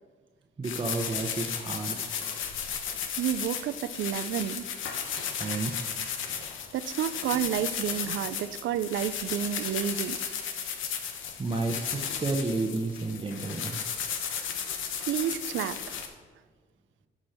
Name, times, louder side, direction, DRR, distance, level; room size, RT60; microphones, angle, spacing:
sound 1, 0.6-16.1, left 7 dB, 80° left, 1.1 m, -34 dB
voice 1, 0.6-2.0 5.3-5.8 11.4-13.8, right 3 dB, 25° right, 2 dB, 1.0 m, -31 dB
voice 2, 3.2-4.7 6.7-10.2 15.0-16.0, right 10 dB, 70° right, 14 dB, 0.5 m, -30 dB
11.5 x 6.2 x 4.4 m, 1.5 s
cardioid pair, 90°, 20 cm